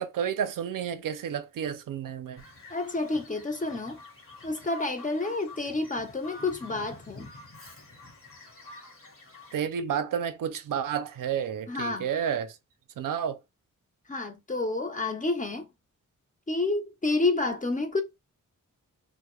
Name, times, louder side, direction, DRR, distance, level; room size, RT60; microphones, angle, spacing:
voice 1, 0.0-2.4 9.5-12.6 13.0-13.4, right 8 dB, 80° right, 0.5 m, -31 dB
Bird vocalization bird call bird song, 2.4-9.6, left 2 dB, 40° left, 1.0 m, -48 dB
voice 2, 2.7-4.0 4.4-7.3 11.7-12.1 14.1-15.7 16.5-18.0, left 3 dB, 25° left, 0.5 m, -29 dB
2.2 x 2.0 x 3.0 m
wide cardioid pair, 130°, 32 cm